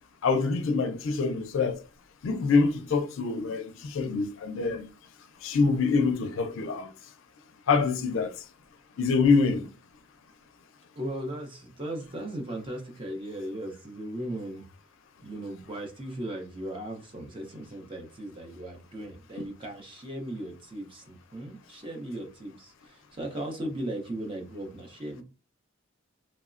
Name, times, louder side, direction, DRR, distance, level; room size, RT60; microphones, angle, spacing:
voice 1, 0.2-1.8 2.2-4.9 5.4-6.9 7.7-8.3 9.0-9.7 19.4-19.5, left 4 dB, 75° left, 0.4 m, -25 dB
voice 2, 11.0-14.6 15.2-25.2, right 1 dB, 25° right, 0.6 m, -37 dB
3.0 x 2.0 x 2.4 m
head